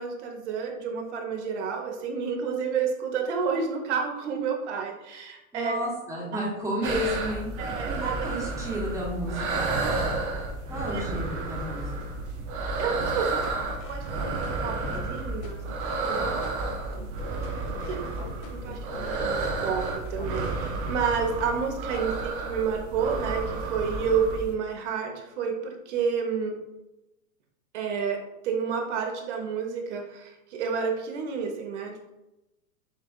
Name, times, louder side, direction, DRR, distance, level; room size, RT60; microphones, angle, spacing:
voice 1, 0.0-5.8 7.6-8.3 10.9-11.0 12.8-13.4 13.7-14.1 14.4-15.6 15.9-16.5 17.7-26.6 27.7-32.1, right 6 dB, 55° right, 3 dB, 1.0 m, -30 dB
voice 2, 5.5-7.5 8.0-9.8 10.7-12.2, equal, 5° right, -4 dB, 1.0 m, -32 dB
sound 1, 6.8-24.5, right 3 dB, 25° right, 0.4 m, -31 dB
sound 2, 12.9-20.9, left 3 dB, 35° left, 0.7 m, -43 dB
7.0 x 2.4 x 2.3 m, 0.94 s
hypercardioid pair, 135°, 42 cm